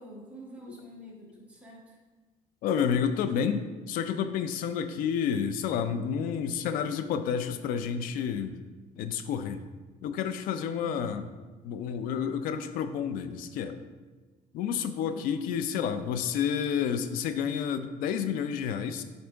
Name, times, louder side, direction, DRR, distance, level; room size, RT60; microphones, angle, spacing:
voice 1, 0.0-2.0 15.0-15.3, equal, 10° right, -4 dB, 1.4 m, -47 dB
voice 2, 2.6-8.6 9.0-9.6 10.0-11.3 11.6-13.8 14.5-19.0, left 7 dB, 80° left, 10 dB, 0.5 m, -30 dB
6.5 x 4.4 x 3.4 m, 1.3 s
cardioid pair, 130°, 14 cm